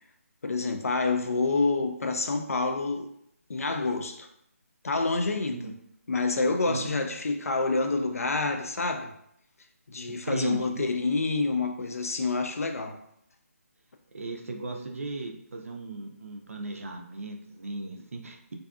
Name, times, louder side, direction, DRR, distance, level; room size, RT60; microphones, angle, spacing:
voice 1, 0.4-3.1 3.5-4.3 4.8-5.7 6.1-9.1 9.9-13.0, left 3 dB, 70° left, 0.4 m, -28 dB
voice 2, 10.1-10.8 14.1-18.5, right 2 dB, 60° right, 0.4 m, -36 dB
2.6 x 2.4 x 2.3 m
hypercardioid pair, 180°, 8 cm